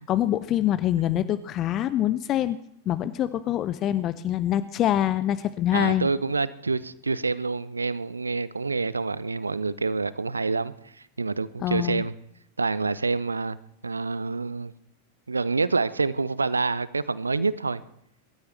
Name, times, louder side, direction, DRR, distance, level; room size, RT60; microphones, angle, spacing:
voice 1, 0.0-2.6 2.9-6.1 11.6-12.0, left 12 dB, 35° left, 15 dB, 0.5 m, -25 dB
voice 2, 5.7-10.7 11.2-12.1 12.6-13.6 13.8-14.7 15.3-17.8, right 4 dB, 80° right, 18 dB, 0.5 m, -27 dB
22.5 x 13.0 x 3.2 m, 0.76 s
figure-of-eight pair, 90°, 0 cm